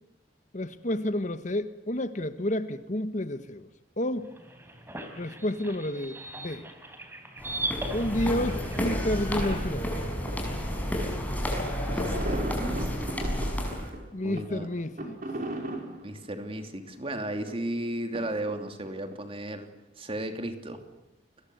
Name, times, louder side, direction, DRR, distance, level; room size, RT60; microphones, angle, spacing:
voice 1, 0.5-3.7 4.0-4.3 5.2-6.7 7.9-9.9 14.1-15.2, left 1 dB, 40° left, 11 dB, 1.3 m, -30 dB
sound 1, 4.2-9.7, right 1 dB, 15° right, 3.9 m, -39 dB
sound 2, 7.4-13.9, equal, 10° left, 6.0 m, -31 dB
sound 3, 9.4-9.9 10.3-10.4 10.8-10.9 11.9-17.8 18.1-19.2, right 1 dB, 45° right, 5.2 m, -38 dB
voice 2, 11.9-13.1 14.2-14.7 16.0-19.7 20.0-20.8, right 1 dB, 30° right, 6 dB, 2.9 m, -35 dB
29.5 x 21.5 x 8.0 m, 0.97 s
head